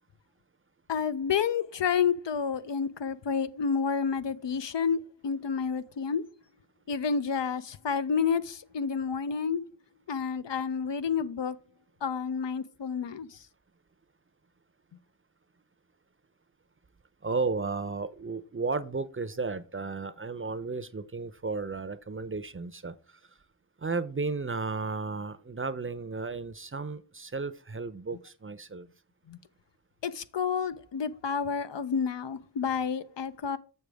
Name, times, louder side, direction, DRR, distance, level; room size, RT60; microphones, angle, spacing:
voice 1, 0.9-6.2 6.9-9.6 10.1-11.6 12.0-13.4 29.3-29.4 30.0-33.6, left 6 dB, 75° left, 0.6 m, -30 dB
voice 2, 17.2-23.4 23.8-28.9, right 4 dB, 30° right, 0.6 m, -34 dB
6.9 x 6.6 x 3.4 m
wide cardioid pair, 50°, 44 cm